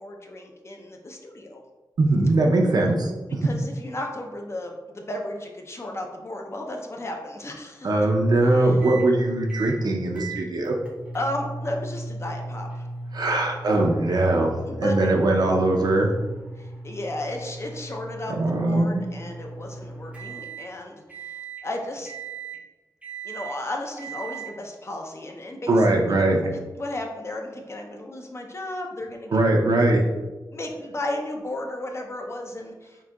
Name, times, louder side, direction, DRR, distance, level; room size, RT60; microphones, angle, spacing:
voice 1, 0.0-1.6 3.4-7.9 8.6-8.8 11.1-12.9 14.6-15.1 16.6-22.1 23.2-25.8 26.1-29.4 30.5-33.0, left 1 dB, 35° left, 2 dB, 0.4 m, -34 dB
voice 2, 2.0-3.4 7.8-10.7 13.1-14.5 14.8-16.1 18.4-19.0 25.7-26.4 29.3-30.0, right 2 dB, 60° right, 1 dB, 0.5 m, -21 dB
sound 1, 8.8-9.1 9.5-9.8 10.2-20.7 21.1-21.7 22.1-22.6 23.0-23.6 24.0-24.5, right 3 dB, 15° right, 0.6 m, -38 dB
3.7 x 2.7 x 2.2 m, 1.2 s
wide cardioid pair, 85°, 8 cm